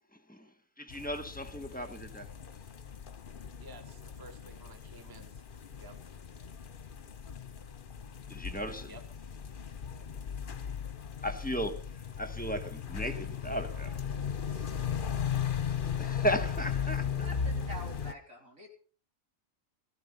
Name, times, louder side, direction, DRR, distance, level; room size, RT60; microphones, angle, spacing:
voice 1, 0.8-2.3 8.3-8.9 11.2-11.8 12.2-14.0 15.8-17.1, equal, 5° left, 1.6 m, -35 dB
sound 1, 0.9-18.1, left 7 dB, 45° left, 1.0 m, -37 dB
voice 2, 3.6-5.3 5.8-6.0 8.9-9.0 13.7-13.8 14.4-14.6, right 2 dB, 15° right, 1.4 m, -52 dB
voice 3, 17.2-18.7, equal, 75° right, 4.5 m, -46 dB
17.0 x 15.0 x 5.6 m
omnidirectional pair, 1.4 m